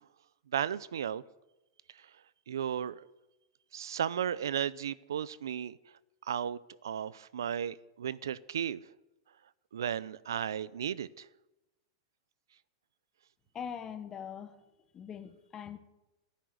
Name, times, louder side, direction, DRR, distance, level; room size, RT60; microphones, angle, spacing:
voice 1, 0.5-1.2 2.5-3.1 3.7-5.8 6.3-8.8 9.7-11.2, right 9 dB, 90° right, 0.6 m, -34 dB
voice 2, 13.5-14.7 14.9-15.8, left 8 dB, 25° left, 1.4 m, -42 dB
13.0 x 10.5 x 9.6 m
hypercardioid pair, 125°, 2 cm